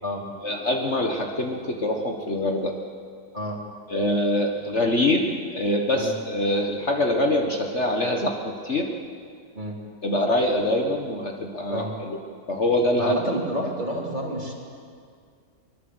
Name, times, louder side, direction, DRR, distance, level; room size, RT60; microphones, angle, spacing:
voice 1, 0.4-2.7 3.9-8.9 10.0-12.2 12.5-13.2 14.0-14.5, left 1 dB, 45° left, 2 dB, 1.7 m, -24 dB
voice 2, 13.0-14.5, equal, 25° right, -1 dB, 3.5 m, -30 dB
23.0 x 21.0 x 8.0 m, 2.2 s
omnidirectional pair, 1.8 m